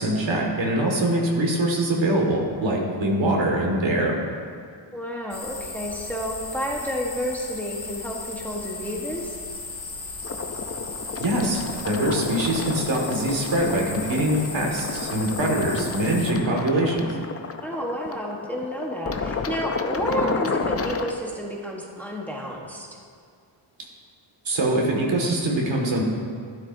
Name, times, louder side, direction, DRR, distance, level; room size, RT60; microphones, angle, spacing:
voice 1, 0.0-4.1 11.2-13.8 14.1-17.1 24.5-26.0, right 1 dB, 65° right, -1 dB, 2.0 m, -23 dB
voice 2, 4.9-9.4 17.6-23.0, equal, 5° left, -2 dB, 1.2 m, -30 dB
sound 1, 5.3-16.3, left 3 dB, 45° left, 1.7 m, -36 dB
sound 2, 10.2-21.1, left 4 dB, 30° left, 0.6 m, -31 dB
12.5 x 11.5 x 2.7 m, 2.2 s
wide cardioid pair, 110°, 49 cm